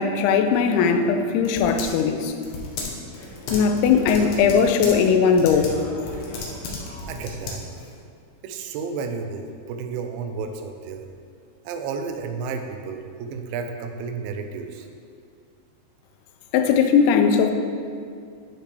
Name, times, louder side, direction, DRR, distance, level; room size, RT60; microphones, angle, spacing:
voice 1, 0.0-2.3 3.5-5.7 16.5-17.5, left 6 dB, 85° left, 6 dB, 2.6 m, -19 dB
Typing, 0.5-8.0, left 2 dB, 65° left, 2.1 m, -35 dB
voice 2, 7.1-7.6 8.4-11.1 11.6-14.9, right 5 dB, 80° right, 5 dB, 2.4 m, -32 dB
9.9 x 5.9 x 3.4 m, 2.3 s
omnidirectional pair, 4.5 m